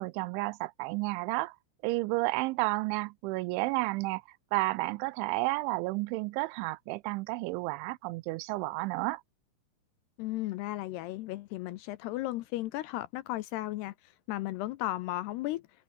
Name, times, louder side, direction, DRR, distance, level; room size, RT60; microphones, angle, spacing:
voice 1, 0.0-1.6 1.8-4.2 4.5-9.2, right 22 dB, 85° right, 3.0 m, -31 dB
voice 2, 10.2-13.9 14.3-15.6, left 16 dB, 80° left, 2.4 m, -35 dB
omnidirectional pair, 5.4 m